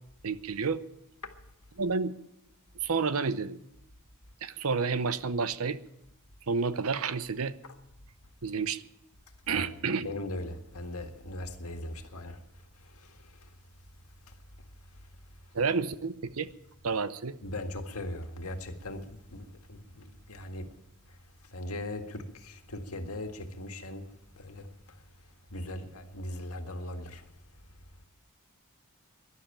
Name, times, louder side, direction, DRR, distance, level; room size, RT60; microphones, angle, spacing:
voice 1, 0.2-0.8 1.8-2.1 2.8-3.6 4.4-5.8 6.5-7.5 8.4-8.8 9.5-10.1 15.5-16.5 16.8-17.3, right 5 dB, 70° right, 0.7 m, -30 dB
voice 2, 10.0-12.4 17.4-20.6 21.5-24.0 24.4-24.7 25.5-27.2, left 1 dB, 75° left, 1.8 m, -39 dB
12.5 x 11.5 x 8.9 m
head